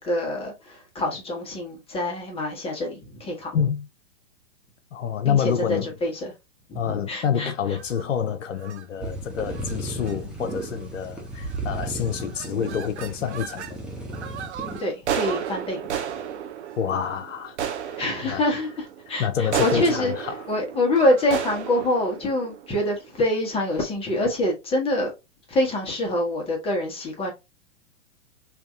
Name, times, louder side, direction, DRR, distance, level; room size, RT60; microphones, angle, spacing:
voice 1, 0.0-3.6 5.3-6.3 6.7-7.8 14.8-16.0 18.0-20.1 20.5-25.1 25.5-27.3, left 1 dB, 15° left, 1.1 m, -26 dB
voice 2, 3.5-3.9 4.9-5.9 6.7-13.8 16.8-17.6 17.8-18.0 18.3-18.4 19.2-20.5, left 8 dB, 85° left, 0.6 m, -27 dB
sound 1, 7.7-8.0 8.6-8.8 9.5-9.8 10.0-10.1 10.5-10.9 11.4-11.8 12.0-13.7 14.1-23.3, right 9 dB, 65° right, 0.9 m, -33 dB
sound 2, 9.0-14.8, right 2 dB, 5° right, 0.4 m, -34 dB
3.4 x 2.7 x 2.4 m
hypercardioid pair, 115°, 37 cm